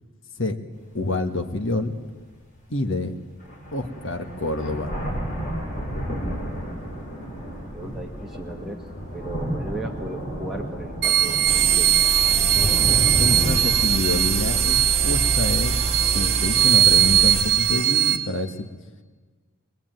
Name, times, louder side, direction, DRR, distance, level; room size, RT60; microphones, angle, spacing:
voice 1, 0.9-2.0 2.7-3.1 3.7-4.9 13.2-18.7, left 2 dB, 65° left, 6 dB, 1.7 m, -27 dB
sound 1, 0.9-1.0 1.6-1.7 3.0-3.1 3.4-17.4, equal, 40° left, 7.7 m, -32 dB
voice 2, 7.3-8.8 9.1-11.9, right 1 dB, ahead, -1 dB, 2.2 m, -36 dB
sound 2, 11.0-18.2, right 11 dB, 55° right, 1.9 m, -20 dB
sound 3, 11.5-17.4, right 4 dB, 30° right, 0.9 m, -27 dB
23.5 x 21.0 x 9.3 m, 1.4 s
head